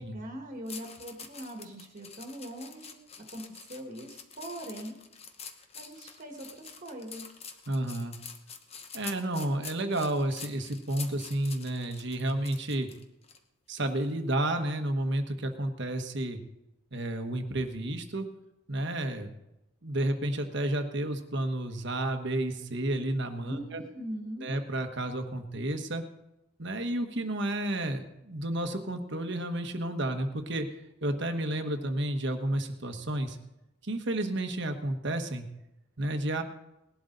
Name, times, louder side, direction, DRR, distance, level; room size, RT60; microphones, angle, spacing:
voice 1, 0.0-3.0 3.3-5.0 5.7-7.3 23.4-24.6, right 1 dB, 40° right, 1 dB, 1.7 m, -41 dB
sound 1, 0.7-13.4 13.8-14.0, left 6 dB, 30° left, 1.0 m, -46 dB
voice 2, 7.7-8.2 8.9-12.9 13.7-16.4 16.9-18.3 18.7-19.3 19.8-23.8 24.4-26.0 26.6-30.7 31.0-33.4 33.8-35.5 36.0-36.4, right 1 dB, 55° right, 6 dB, 1.3 m, -31 dB
19.5 x 11.5 x 4.0 m, 0.91 s
head